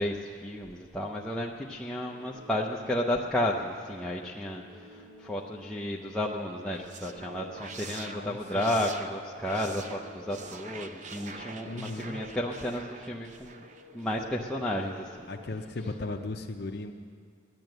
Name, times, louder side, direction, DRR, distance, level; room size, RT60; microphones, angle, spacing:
voice 1, 0.0-13.6 13.9-15.3, left 1 dB, 5° left, -3 dB, 0.6 m, -32 dB
sound 1, 2.0-16.3, left 1 dB, 65° right, 1.6 m, -53 dB
sound 2, 6.5-14.5, right 4 dB, 40° right, 0.6 m, -45 dB
voice 2, 8.0-8.8 11.6-12.2 15.3-16.9, left 2 dB, 55° left, 3 dB, 0.6 m, -37 dB
16.5 x 10.5 x 7.8 m, 2.2 s
head